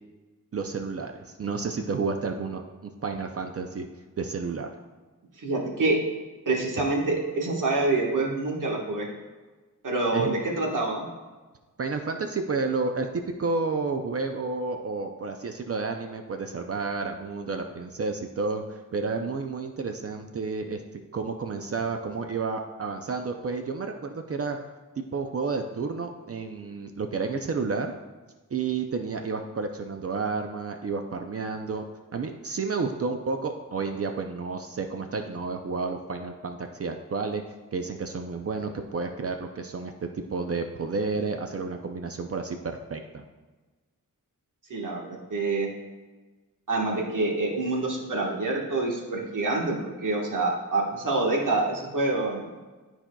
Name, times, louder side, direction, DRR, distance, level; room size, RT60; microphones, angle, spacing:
voice 1, 0.5-3.9 4.2-4.7 10.1-10.3 11.8-20.8 21.1-24.6 25.0-27.9 28.5-31.8 32.1-37.4 37.7-43.2, right 4 dB, 45° right, 5 dB, 0.5 m, -31 dB
voice 2, 5.4-6.0 6.4-9.1 9.8-11.1 44.7-45.7 46.7-52.5, right 2 dB, 70° right, -2 dB, 1.4 m, -26 dB
12.0 x 4.3 x 2.3 m, 1.3 s
wide cardioid pair, 140°, 32 cm